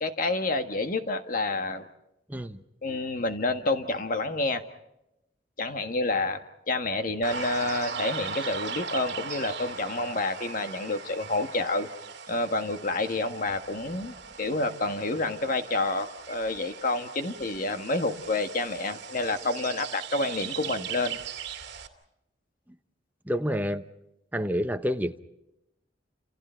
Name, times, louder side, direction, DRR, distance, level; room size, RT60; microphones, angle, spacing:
voice 1, 0.0-1.8 2.8-4.6 5.6-6.4 6.7-11.9 12.3-21.2, left 2 dB, 50° left, 1.6 m, -29 dB
voice 2, 2.3-2.6 23.2-23.8 24.3-25.2, equal, 10° right, 1.0 m, -28 dB
sound 1, 7.2-21.9, right 5 dB, 65° right, 2.3 m, -39 dB
29.5 x 28.0 x 4.5 m
head